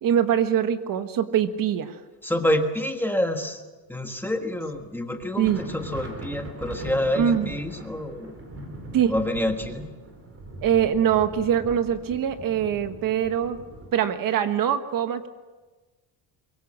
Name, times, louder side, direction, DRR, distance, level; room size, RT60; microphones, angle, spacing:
voice 1, 0.0-2.0 5.4-5.6 7.2-7.5 8.9-9.1 10.6-13.6 13.9-15.3, right 9 dB, 50° right, 9 dB, 1.4 m, -23 dB
voice 2, 2.2-3.6 3.9-8.3 9.1-9.8, left 1 dB, 5° left, 4 dB, 1.5 m, -27 dB
sound 1, 4.7-4.9 5.1-13.9, right 1 dB, 30° right, 4.3 m, -40 dB
23.5 x 23.0 x 7.4 m, 1.2 s
cardioid pair, 175°, 42 cm